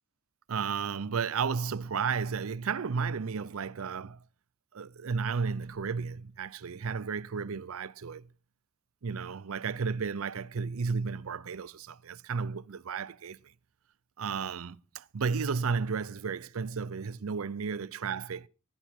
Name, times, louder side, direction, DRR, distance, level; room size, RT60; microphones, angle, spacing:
voice 1, 0.5-4.2 4.7-8.3 9.0-13.4 14.2-18.5, right 5 dB, 80° right, 0.6 m, -33 dB
15.5 x 11.0 x 4.4 m
head